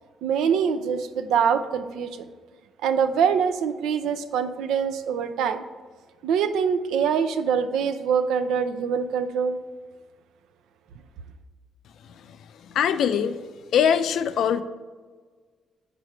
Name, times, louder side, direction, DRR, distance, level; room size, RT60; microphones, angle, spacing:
voice 1, 0.2-2.3 2.8-5.6 6.2-9.6, right 7 dB, 85° right, 10 dB, 0.5 m, -24 dB
voice 2, 12.6-13.4 13.7-14.6, left 8 dB, 75° left, 11 dB, 0.4 m, -22 dB
5.1 x 4.7 x 5.5 m, 1.5 s
cardioid pair, 90°, 0 cm